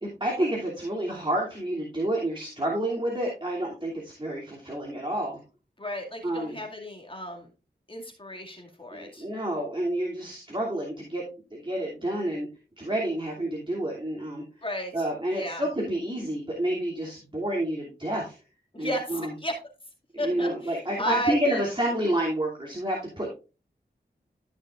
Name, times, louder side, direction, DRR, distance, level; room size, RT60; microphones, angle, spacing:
voice 1, 0.0-5.4 6.2-6.6 8.9-11.2 11.5-12.5 12.8-14.4 14.9-18.4 18.8-19.3 20.1-23.3, right 1 dB, 25° right, -3 dB, 2.8 m, -29 dB
voice 2, 5.8-7.5 7.9-9.2 14.6-15.7 18.8-19.5 20.2-21.6, equal, 30° left, 0 dB, 2.3 m, -33 dB
13.5 x 6.1 x 2.5 m, 0.32 s
wide cardioid pair, 55°, 18 cm